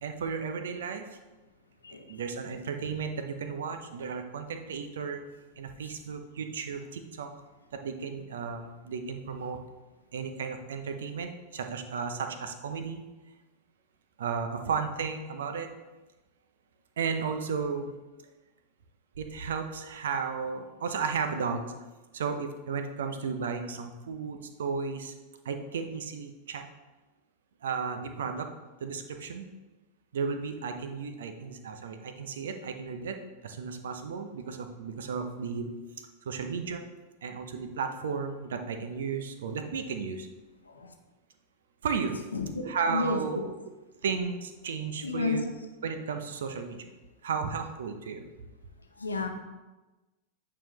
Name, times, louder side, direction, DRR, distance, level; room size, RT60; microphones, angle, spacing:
voice 1, 0.0-1.1 2.1-5.2 5.6-7.3 7.7-9.6 10.1-13.1 14.2-15.7 17.0-17.9 19.2-21.7 22.1-25.1 25.4-26.6 27.6-28.5 28.8-29.5 30.1-35.7 36.3-36.8 37.2-40.3 41.8-42.2 42.6-43.5 44.0-45.5 45.8-46.9 47.2-48.2, right 5 dB, 60° right, 7 dB, 0.7 m, -34 dB
voice 2, 42.3-42.6 42.9-43.2 45.0-45.4 49.0-49.3, left 4 dB, 75° left, 4 dB, 0.8 m, -31 dB
8.7 x 4.8 x 3.0 m, 1.1 s
figure-of-eight pair, 90°, 0 cm